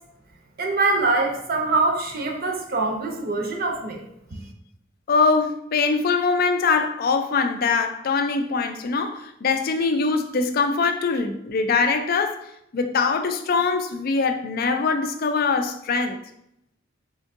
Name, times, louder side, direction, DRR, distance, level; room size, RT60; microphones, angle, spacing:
voice 1, 0.6-4.0, right 3 dB, 50° right, 0.6 m, -23 dB
voice 2, 5.1-12.5 12.7-16.2, left 4 dB, 50° left, 0.4 m, -22 dB
3.6 x 2.7 x 3.6 m
head